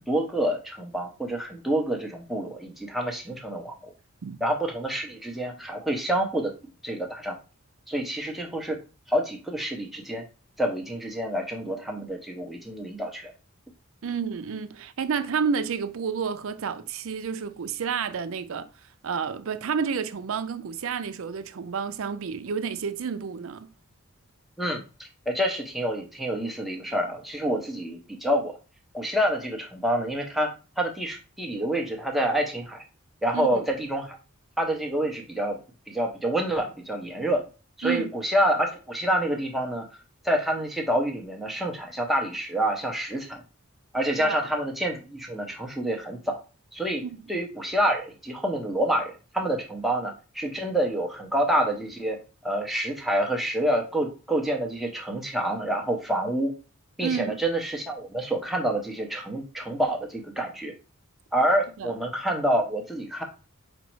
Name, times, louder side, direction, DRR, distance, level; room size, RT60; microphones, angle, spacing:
voice 1, 0.1-3.9 4.4-6.5 6.8-7.4 7.9-8.8 9.1-10.2 10.6-13.3 24.6-28.6 28.9-32.8 33.2-34.2 34.6-35.6 35.9-37.4 37.8-39.9 40.2-43.4 43.9-46.4 46.7-47.0 47.3-56.6 57.0-60.8 61.3-63.2, right 1 dB, ahead, 0.7 m, -27 dB
voice 2, 14.0-18.7 19.0-23.7 33.3-33.7 37.8-38.1 44.2-44.4 47.0-47.2 57.0-57.4 61.8-61.9, right 6 dB, 65° right, 0.4 m, -30 dB
5.1 x 2.0 x 4.5 m
head